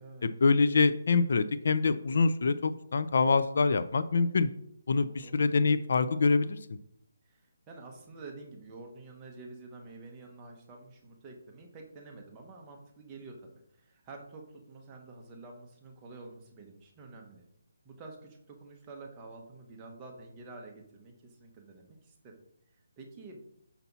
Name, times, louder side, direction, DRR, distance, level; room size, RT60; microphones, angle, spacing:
voice 1, 0.2-4.5 4.9-6.8, left 4 dB, 55° left, 12 dB, 0.4 m, -25 dB
voice 2, 5.0-5.4 7.3-7.4 7.7-17.4 17.8-22.4 23.0-23.4, right 3 dB, 15° right, 0 dB, 0.9 m, -49 dB
5.8 x 5.6 x 4.0 m, 0.75 s
hypercardioid pair, 170°, 0 cm